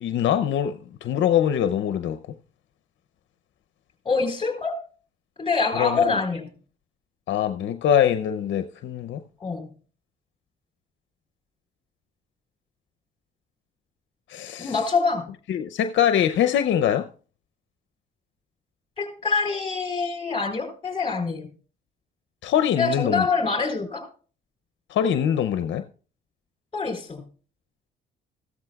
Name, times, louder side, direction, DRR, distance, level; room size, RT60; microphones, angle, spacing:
voice 1, 0.0-2.2 5.7-6.1 7.3-9.2 14.3-14.8 15.5-17.1 22.4-23.3 24.9-25.8, left 9 dB, 70° left, 0.6 m, -23 dB
voice 2, 4.0-4.8 5.4-6.5 9.4-9.7 14.6-15.3 19.0-21.5 22.8-24.0 26.7-27.2, left 4 dB, 25° left, 4.1 m, -25 dB
15.0 x 13.5 x 2.3 m
cardioid pair, 90°, 20 cm